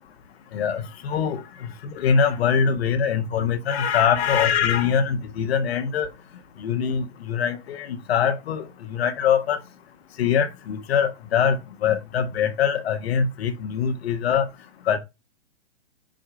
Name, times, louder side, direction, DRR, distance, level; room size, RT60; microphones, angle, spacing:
voice 1, 0.5-6.1 6.6-9.6 10.2-14.5 14.9-15.0, left 7 dB, 60° left, 1.4 m, -23 dB
8.0 x 2.8 x 4.9 m
hypercardioid pair, 125°, 35 cm